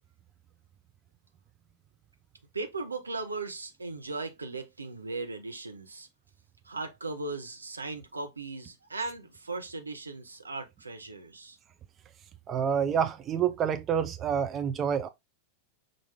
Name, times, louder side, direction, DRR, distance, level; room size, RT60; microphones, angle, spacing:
voice 1, 2.5-6.1 6.6-11.6, right 3 dB, 80° right, 0.8 m, -37 dB
voice 2, 12.5-15.1, right 8 dB, 25° right, 0.4 m, -28 dB
5.8 x 2.5 x 3.4 m
figure-of-eight pair, 90°, 0 cm